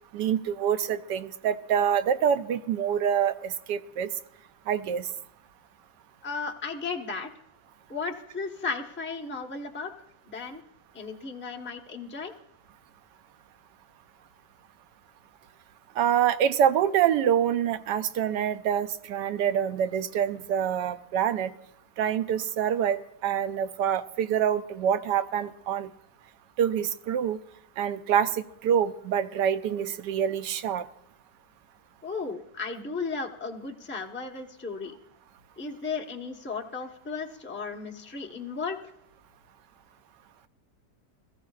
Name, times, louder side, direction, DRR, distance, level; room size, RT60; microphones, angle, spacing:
voice 1, 0.1-4.1 4.7-5.1 16.0-21.5 22.0-25.9 26.6-27.4 27.8-30.8, right 9 dB, 90° right, 10 dB, 1.3 m, -26 dB
voice 2, 6.2-7.3 7.9-9.9 10.3-10.6 10.9-12.3 32.0-34.9 35.6-38.8, left 4 dB, 10° left, 1 dB, 0.7 m, -35 dB
22.5 x 14.0 x 2.4 m, 0.80 s
omnidirectional pair, 1.8 m